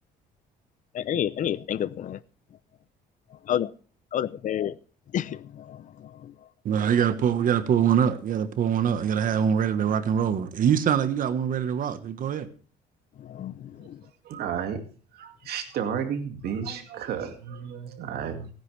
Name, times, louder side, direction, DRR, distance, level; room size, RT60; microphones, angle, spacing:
voice 1, 0.9-2.2 3.5-3.7 4.1-4.7 5.1-6.3 13.2-14.0, left 10 dB, 50° left, 0.7 m, -30 dB
voice 2, 6.6-12.5, right 8 dB, 55° right, 1.3 m, -24 dB
voice 3, 14.3-14.8 15.2-18.5, right 8 dB, 70° right, 2.3 m, -32 dB
17.0 x 10.0 x 3.4 m
cardioid pair, 110°, 17 cm